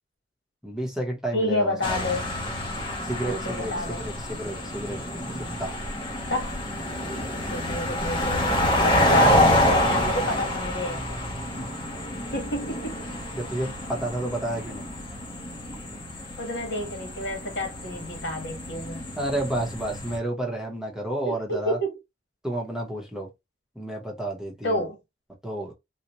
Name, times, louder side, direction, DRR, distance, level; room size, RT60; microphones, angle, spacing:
voice 1, 0.6-2.1 3.0-5.0 5.3-5.7 13.3-14.9 19.2-21.8 22.4-23.3 23.7-24.8 25.4-25.7, right 1 dB, 5° right, 0.9 m, -31 dB
voice 2, 1.3-2.3 3.2-4.0 6.3-6.6 7.5-11.2 12.3-13.0 16.4-19.1 21.2-21.9 24.6-25.0, equal, 70° left, 1.4 m, -29 dB
sound 1, 1.8-20.2, left 1 dB, 25° left, 1.0 m, -27 dB
3.9 x 2.1 x 3.0 m
head